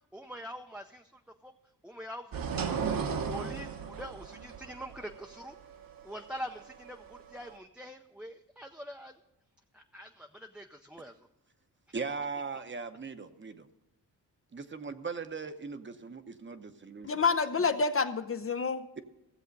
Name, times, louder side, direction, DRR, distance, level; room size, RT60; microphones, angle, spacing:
voice 1, 0.1-1.5 1.8-2.8 3.1-5.6 6.0-9.2 9.7-11.2 12.0-12.1, equal, 5° right, 3 dB, 0.6 m, -44 dB
sound 1, 2.3-7.5, right 6 dB, 60° right, 1.1 m, -36 dB
voice 2, 11.9-13.7 14.5-17.2, right 5 dB, 30° right, 9 dB, 0.8 m, -39 dB
voice 3, 17.0-18.8, left 4 dB, 35° left, 9 dB, 0.6 m, -28 dB
15.0 x 7.4 x 5.3 m, 0.98 s
cardioid pair, 90°, 39 cm